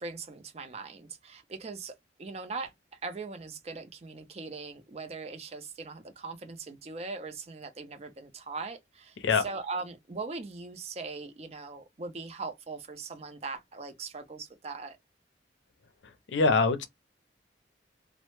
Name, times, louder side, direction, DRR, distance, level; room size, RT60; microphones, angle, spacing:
voice 1, 0.0-1.9 2.2-9.2 9.4-15.0, right 4 dB, 35° right, 0.4 m, -40 dB
voice 2, 16.0-16.9, left 4 dB, 80° left, 0.5 m, -24 dB
2.1 x 2.0 x 2.9 m
head